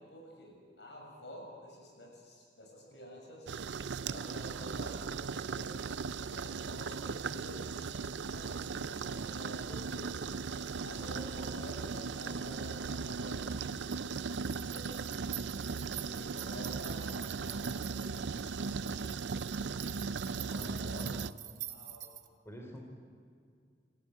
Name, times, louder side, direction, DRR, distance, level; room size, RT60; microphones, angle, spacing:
voice 1, 0.0-3.5 4.0-10.2 10.8-14.1 14.4-15.3 16.0-21.2 21.6-22.1, left 1 dB, 80° left, 0 dB, 7.2 m, -50 dB
sound 1, 3.5-21.3, right 5 dB, 90° right, 0.5 m, -38 dB
sound 2, 11.1-22.3, right 13 dB, 50° right, 1.1 m, -48 dB
voice 2, 20.5-21.1 22.4-22.8, equal, 15° left, 1 dB, 3.3 m, -46 dB
28.5 x 15.0 x 9.1 m, 2.2 s
head